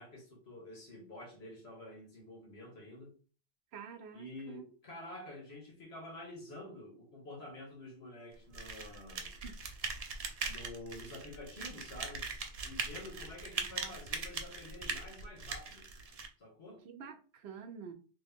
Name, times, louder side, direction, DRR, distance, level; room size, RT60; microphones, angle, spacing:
voice 1, 0.0-3.1 4.1-9.3 10.4-12.3 12.6-15.9 16.4-16.8, left 1 dB, 75° left, 1.7 m, -49 dB
voice 2, 3.7-4.6 9.4-9.6 13.7-13.9 16.8-17.9, right 6 dB, 80° right, 0.9 m, -48 dB
sound 1, 8.5-16.3, right 4 dB, 45° right, 0.6 m, -41 dB
3.0 x 2.9 x 3.5 m
omnidirectional pair, 1.1 m